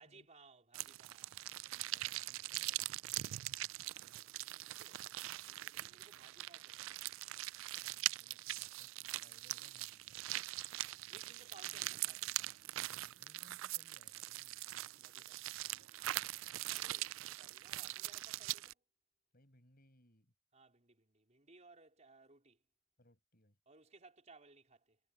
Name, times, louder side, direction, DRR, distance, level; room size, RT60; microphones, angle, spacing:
voice 1, 0.0-1.5 3.7-7.1 10.7-12.6 14.7-15.5 16.3-18.8 20.5-22.6 23.7-25.0, right 3 dB, 35° right, 4.2 m, -64 dB
sound 1, 0.7-18.7, right 17 dB, 75° right, 0.3 m, -42 dB
voice 2, 1.6-3.4 7.8-10.2 12.9-15.9 19.3-20.3 23.0-23.6, left 1 dB, 50° left, 6.8 m, -69 dB
head